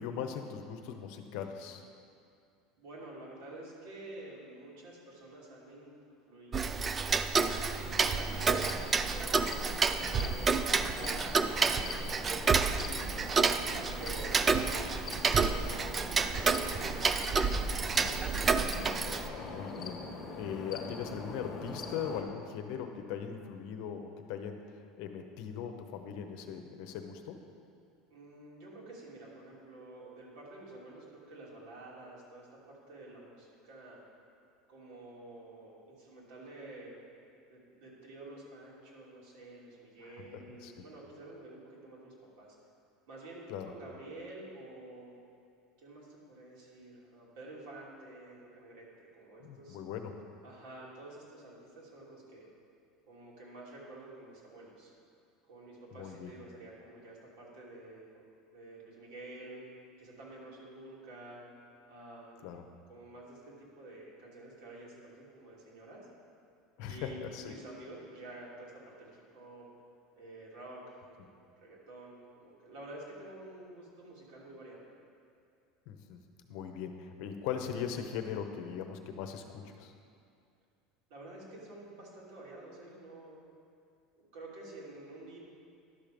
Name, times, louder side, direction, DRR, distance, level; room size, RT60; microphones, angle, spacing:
voice 1, 0.0-1.8 10.4-10.5 19.1-20.0 20.4-24.6 25.0-27.4 40.0-40.8 43.5-43.7 49.4-50.2 55.9-56.3 62.4-62.6 66.8-67.5 75.9-76.2 76.5-79.9, left 8 dB, 60° left, 6 dB, 0.8 m, -40 dB
voice 2, 2.8-6.0 6.3-7.4 7.8-9.3 9.9-12.1 12.8-18.0 28.1-34.0 34.7-36.9 37.5-42.6 43.1-45.1 45.8-48.9 49.1-49.8 50.4-52.5 53.1-54.9 55.5-58.1 58.5-59.6 60.0-61.4 61.9-62.5 62.9-66.0 66.8-69.7 70.2-74.8 81.1-83.4 84.2-85.4, right 2 dB, 70° right, -4 dB, 2.8 m, -50 dB
Tick-tock, 6.5-19.3, right 4 dB, 20° right, 0.3 m, -29 dB
sound 1, 7.8-22.2, left 3 dB, 20° left, 1.4 m, -44 dB
11.5 x 6.3 x 5.2 m, 2.4 s
cardioid pair, 160°, 0 cm